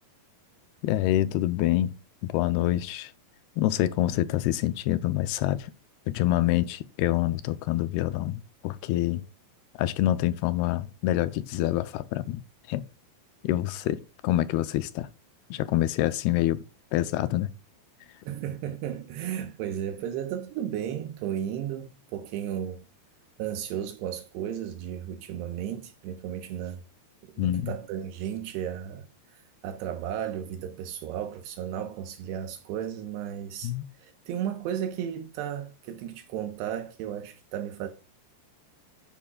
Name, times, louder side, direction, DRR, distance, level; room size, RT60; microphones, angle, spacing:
voice 1, 0.8-2.0 2.2-3.1 3.6-5.7 6.1-9.2 9.8-12.4 12.7-12.8 13.4-15.1 15.5-16.6 16.9-17.5 27.4-27.7 33.6-33.8, left 14 dB, 80° left, 2.4 m, -26 dB
voice 2, 18.3-22.8 23.4-26.8 27.3-29.1 29.3-33.7 34.0-37.9, right 10 dB, 80° right, 3.1 m, -34 dB
11.0 x 10.0 x 2.3 m
omnidirectional pair, 5.0 m